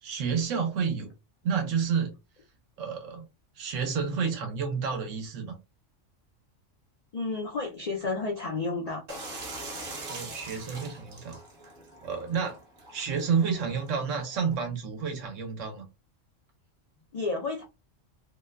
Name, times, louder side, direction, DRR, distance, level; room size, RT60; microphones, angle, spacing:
voice 1, 0.0-1.1 1.4-2.1 2.8-3.3 3.6-5.6 10.0-11.4 12.0-12.6 12.9-15.9, right 6 dB, 80° right, 1.1 m, -30 dB
voice 2, 7.1-9.0 17.1-17.6, left 3 dB, 80° left, 0.3 m, -31 dB
sound 1, 9.1-14.5, right 2 dB, 55° right, 0.8 m, -42 dB
2.7 x 2.1 x 2.2 m
omnidirectional pair, 1.3 m